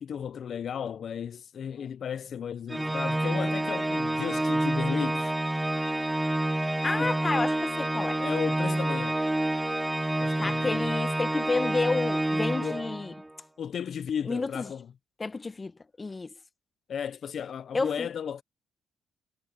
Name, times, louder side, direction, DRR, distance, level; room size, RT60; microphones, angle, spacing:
voice 1, 0.0-5.3 7.0-7.1 8.2-9.2 10.2-10.9 12.6-12.8 13.6-14.9 16.9-18.4, left 8 dB, 60° left, 0.5 m, -34 dB
Organ, 2.7-13.3, right 1 dB, 10° right, 0.8 m, -28 dB
voice 2, 6.8-8.2 10.4-13.1 14.3-14.7 15.2-15.7 16.0-16.3 17.7-18.1, left 3 dB, 25° left, 1.1 m, -30 dB
cardioid pair, 90°, 0 cm